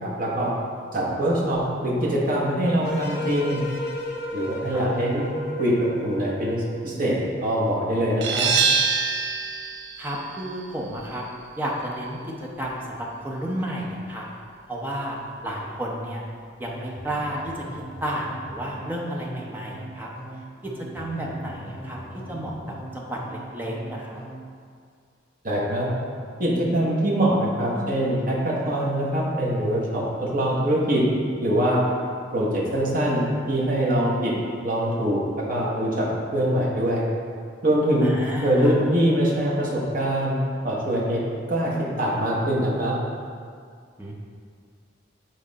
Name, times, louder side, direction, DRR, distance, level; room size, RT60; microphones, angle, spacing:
voice 1, 0.0-0.5 0.9-3.6 4.3-5.2 5.6-5.7 6.0-8.5 25.4-25.9 26.4-31.0 31.4-31.8 32.3-34.3 34.6-37.0 37.6-38.1 38.4-40.4 40.6-41.2 41.5-43.0, right 1 dB, 45° right, -5 dB, 1.1 m, -23 dB
sound 1, 2.8-7.2, left 1 dB, 55° left, 0.7 m, -33 dB
sound 2, 8.2-13.6, right 5 dB, 65° right, 0.5 m, -27 dB
voice 2, 10.0-11.2 11.6-14.3 14.7-16.2 16.6-17.6 18.0-20.1 20.6-22.5 22.9-24.2 38.0-38.7 44.0-44.1, right 1 dB, 10° right, -3 dB, 0.8 m, -32 dB
sound 3, 16.6-24.5, right 1 dB, 20° left, 1.5 m, -40 dB
7.6 x 4.0 x 4.1 m, 2.1 s
head